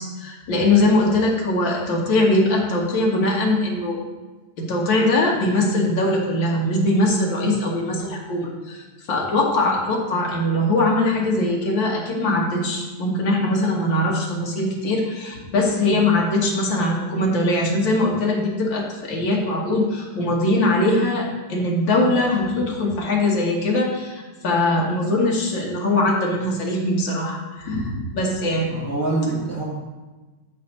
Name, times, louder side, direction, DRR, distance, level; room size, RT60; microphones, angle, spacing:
voice 1, 0.0-4.0 4.6-8.8 9.1-28.7, left 2 dB, 75° left, -2 dB, 2.1 m, -21 dB
voice 2, 28.7-29.6, right 3 dB, 10° left, -8 dB, 2.7 m, -24 dB
6.6 x 4.5 x 6.3 m, 1.2 s
omnidirectional pair, 2.1 m